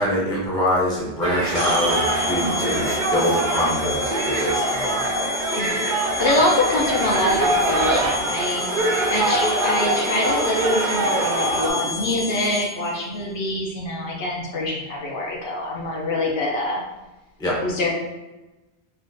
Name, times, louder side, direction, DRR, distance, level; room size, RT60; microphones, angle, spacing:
voice 1, 0.0-5.2 17.4-17.6, left 1 dB, 5° left, -5 dB, 0.6 m, -24 dB
sound 1, 1.2-11.7, right 2 dB, 60° right, 0.6 m, -24 dB
sound 2, 1.5-12.9, left 3 dB, 35° left, 0.8 m, -29 dB
voice 2, 2.4-2.8 5.5-8.7 9.1-16.8 17.6-17.9, left 2 dB, 65° left, -1 dB, 0.8 m, -25 dB
3.5 x 2.4 x 2.6 m, 1.1 s
omnidirectional pair, 1.1 m